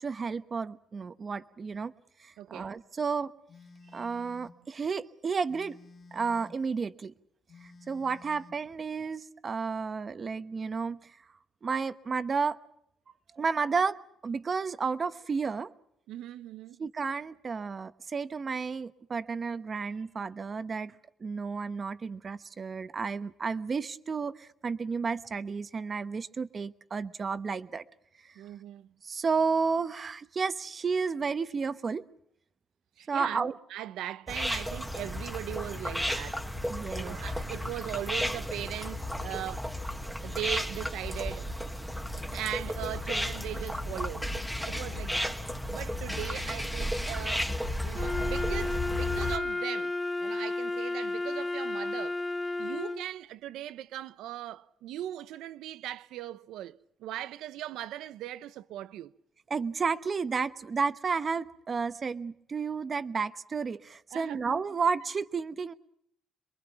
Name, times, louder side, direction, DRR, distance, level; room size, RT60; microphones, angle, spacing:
voice 1, 0.0-1.9 2.2-3.3 3.9-5.8 6.1-7.1 7.9-11.1 11.6-12.6 13.4-14.0 14.2-15.7 16.8-20.9 21.2-27.8 28.2-28.3 29.0-32.0 33.1-33.5 36.7-37.2 59.5-65.7, right 5 dB, 35° right, 1.0 m, -32 dB
voice 2, 2.4-2.7 16.1-16.8 28.3-28.9 33.0-36.5 36.9-39.7 40.2-41.5 42.3-44.4 44.7-45.4 45.7-52.2 52.6-59.1 64.1-64.5, right 13 dB, 90° right, 0.8 m, -39 dB
Telephone, 3.5-4.6 5.5-6.6 7.5-8.6, left 3 dB, 45° left, 2.9 m, -53 dB
sound 1, 34.3-49.4, left 1 dB, ahead, 1.6 m, -33 dB
Wind instrument woodwind instrument, 47.9-53.1, left 2 dB, 20° left, 1.0 m, -32 dB
27.0 x 22.5 x 5.9 m
cardioid pair, 115°, 0 cm